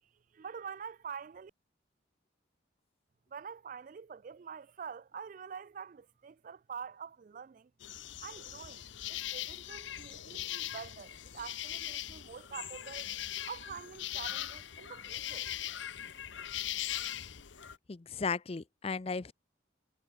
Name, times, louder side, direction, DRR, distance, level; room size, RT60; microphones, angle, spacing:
voice 1, 0.3-1.5 3.3-7.7 8.2-8.8 9.1-13.1 13.4-15.5, right 6 dB, 40° right, 0.3 m, -46 dB
sound 1, 7.8-17.8, left 12 dB, 70° left, 0.9 m, -40 dB
voice 2, 17.9-19.3, left 4 dB, 30° left, 0.5 m, -35 dB
head